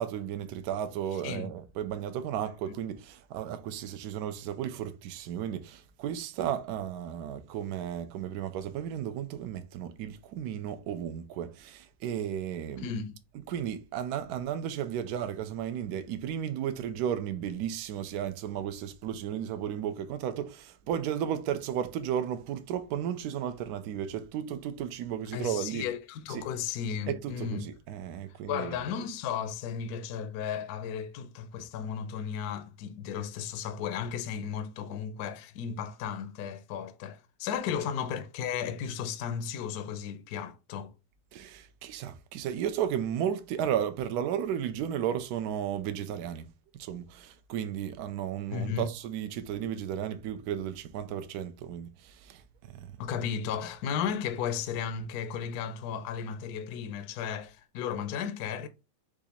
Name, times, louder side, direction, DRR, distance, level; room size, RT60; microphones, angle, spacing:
voice 1, 0.0-12.9 13.5-25.8 26.3-26.5 27.1-28.7 41.3-46.5 46.8-52.4 52.7-53.0, right 9 dB, 70° right, 1.0 m, -34 dB
voice 2, 12.8-13.1 25.3-27.7 28.5-40.9 48.5-48.9 53.0-58.7, left 7 dB, 70° left, 1.0 m, -34 dB
4.9 x 2.5 x 4.0 m
omnidirectional pair, 2.0 m